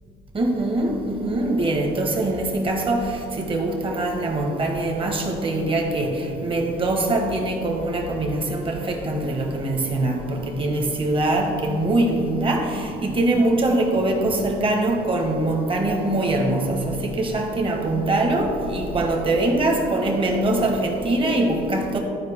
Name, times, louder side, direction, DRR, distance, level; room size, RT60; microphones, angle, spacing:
voice 1, 0.3-22.0, right 2 dB, 30° right, 1.3 m, -23 dB
13.0 x 4.7 x 3.6 m
cardioid pair, 110°, 17 cm